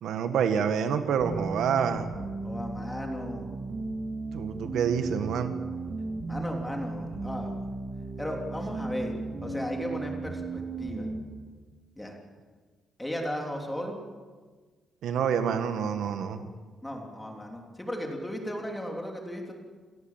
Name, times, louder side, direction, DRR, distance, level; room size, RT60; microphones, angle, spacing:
voice 1, 0.0-2.1 4.3-5.5 15.0-16.5, right 7 dB, 85° right, 8 dB, 1.8 m, -27 dB
sound 1, 1.2-11.2, right 3 dB, 35° right, 3.8 m, -35 dB
voice 2, 2.4-3.6 6.3-7.6 8.2-9.1 9.4-11.1 12.0-12.2 13.0-14.0 16.8-19.5, equal, 5° left, 1 dB, 3.3 m, -35 dB
29.0 x 17.0 x 7.5 m, 1.4 s
wide cardioid pair, 170°, 0 cm